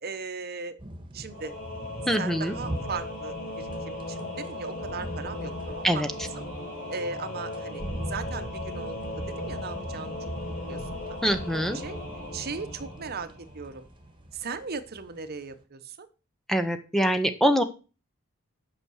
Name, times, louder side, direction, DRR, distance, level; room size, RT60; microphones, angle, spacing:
voice 1, 0.0-0.8 1.1-1.5 2.2-6.0 6.4-6.5 6.9-7.8 8.1-10.1 10.7-11.4 11.7-12.0 12.3-13.3 13.5-13.9 14.3-16.1, right 4 dB, 45° right, 10 dB, 0.9 m, -37 dB
sound 1, 0.8-15.6, right 1 dB, 25° right, 1.5 m, -41 dB
Singing / Musical instrument, 1.3-13.8, left 2 dB, 55° left, 5.8 m, -37 dB
voice 2, 2.1-2.5 5.8-6.1 11.2-11.8 16.5-17.6, equal, ahead, 9 dB, 0.7 m, -24 dB
8.3 x 6.0 x 6.3 m, 0.33 s
head